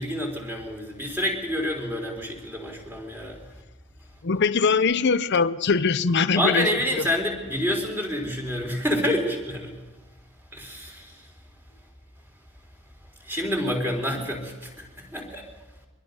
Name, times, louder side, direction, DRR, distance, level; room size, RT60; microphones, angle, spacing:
voice 1, 0.0-3.4 6.4-9.7 10.5-11.2 13.2-15.5, left 1 dB, 10° right, 1 dB, 3.7 m, -28 dB
voice 2, 4.2-6.8, left 5 dB, 50° left, 13 dB, 0.6 m, -22 dB
24.0 x 21.5 x 5.3 m, 1.2 s
head